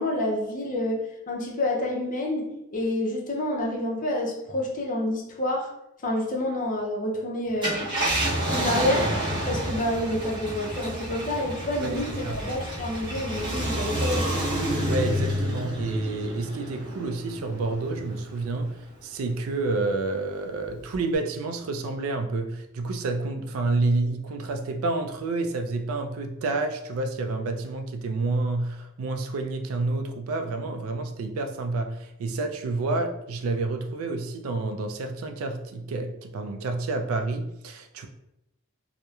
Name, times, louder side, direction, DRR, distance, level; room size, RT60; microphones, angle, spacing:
voice 1, 0.0-5.7 6.0-8.0 8.5-9.1 9.5-14.5, left 1 dB, 40° left, -1 dB, 0.5 m, -28 dB
Car, 7.5-18.3 18.8-18.9 20.9-21.2, equal, 20° right, 0.8 m, -29 dB
voice 2, 11.8-12.4 14.8-18.7 19.0-38.1, right 3 dB, 80° right, 6 dB, 0.3 m, -29 dB
2.8 x 2.0 x 2.3 m, 0.83 s
head